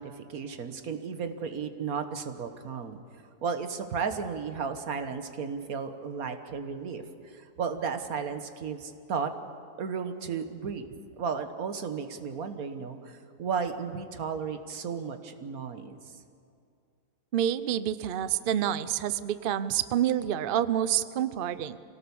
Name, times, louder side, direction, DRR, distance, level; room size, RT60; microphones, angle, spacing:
voice 1, 0.0-3.0 3.4-9.3 9.8-10.9 11.2-16.1, right 6 dB, 60° right, 8 dB, 1.6 m, -34 dB
voice 2, 17.3-21.8, right 10 dB, 85° right, 14 dB, 0.4 m, -28 dB
24.5 x 17.5 x 7.1 m, 2.5 s
omnidirectional pair, 1.8 m